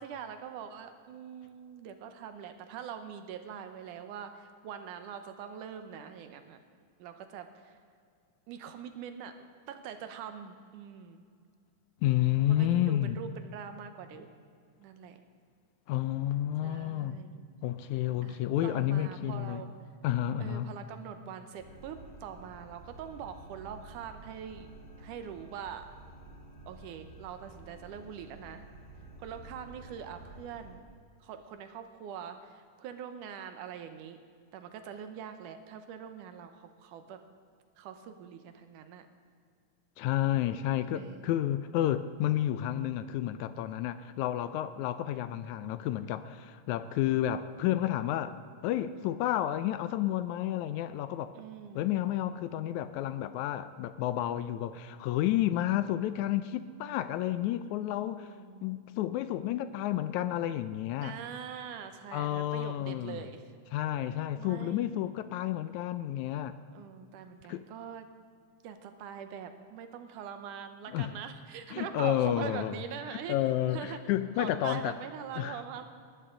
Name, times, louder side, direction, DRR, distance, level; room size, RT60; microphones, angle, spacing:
voice 1, 0.0-6.6 7.0-7.8 8.5-9.4 9.7-11.2 12.5-14.3 14.8-15.2 16.6-17.4 18.2-19.7 20.4-24.7 25.0-25.9 26.7-28.7 29.2-30.8 31.2-34.2 34.5-37.2 37.8-39.1 40.9-41.5 51.3-51.9 58.2-58.9 61.0-63.4 64.4-64.9 66.7-68.1 68.6-74.0 74.4-75.8, right 8 dB, 85° right, 8 dB, 2.4 m, -43 dB
voice 2, 12.0-13.2 15.9-17.2 17.6-19.6 20.0-20.7 40.0-48.4 48.6-51.3 51.8-58.3 58.6-61.2 62.1-63.2 63.7-66.6 67.5-67.7 70.9-71.1 71.7-72.8 73.3-74.9 75.4-75.6, left 12 dB, 80° left, 13 dB, 1.8 m, -30 dB
sound 1, 21.6-30.8, right 1 dB, 20° left, 2.0 m, -51 dB
19.5 x 13.0 x 3.8 m, 2.2 s
omnidirectional pair, 3.6 m